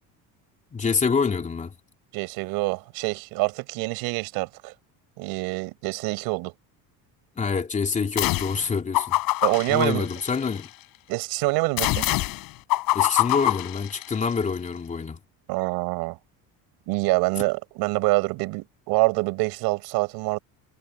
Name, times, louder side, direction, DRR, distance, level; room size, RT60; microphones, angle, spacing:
voice 1, 0.7-1.7 7.4-9.2 9.7-10.7 12.9-15.2, left 5 dB, 20° left, 3.2 m, -26 dB
voice 2, 2.1-4.7 5.2-6.5 9.4-10.1 11.1-12.1 15.5-16.2 16.9-20.4, right 25 dB, 80° right, 7.2 m, -26 dB
sound 1, 8.2-8.6 8.9-10.7 11.8-14.4, left 19 dB, 65° left, 5.7 m, -25 dB
cardioid pair, 155°, 36 cm